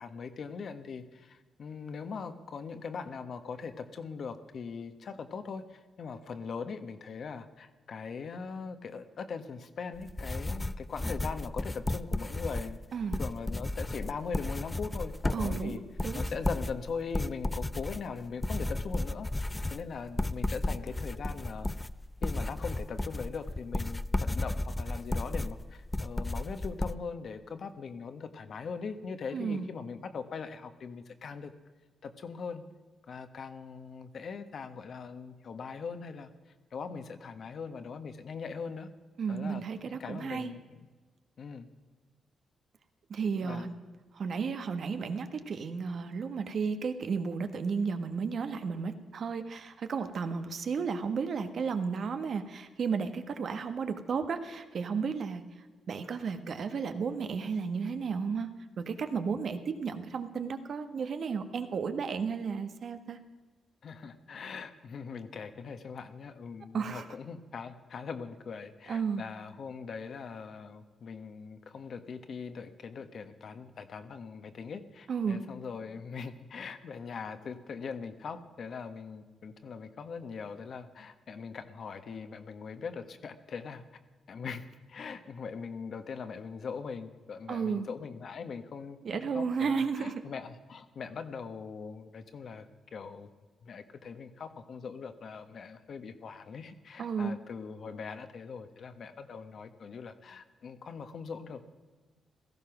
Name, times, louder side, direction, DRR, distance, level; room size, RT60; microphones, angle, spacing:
voice 1, 0.0-12.8 13.2-15.8 16.1-19.3 19.7-21.7 22.2-31.5 32.0-32.6 33.1-36.3 36.7-38.9 39.3-40.9 41.4-41.7 43.4-43.7 63.8-83.8 84.3-84.6 84.9-92.7 92.9-93.3 93.6-101.6, left 5 dB, 60° left, 8 dB, 1.4 m, -41 dB
sound 1, 9.9-26.9, left 2 dB, 15° left, 0.5 m, -34 dB
voice 2, 15.3-16.2 29.3-29.7 39.2-40.5 43.1-43.7 44.1-55.4 55.9-58.5 58.8-63.2 66.7-67.1 68.9-69.2 75.1-75.4 87.5-87.9 89.0-90.2 97.0-97.4, right 5 dB, 60° right, 8 dB, 1.4 m, -33 dB
16.5 x 14.5 x 6.0 m, 1.3 s
cardioid pair, 75°, 0 cm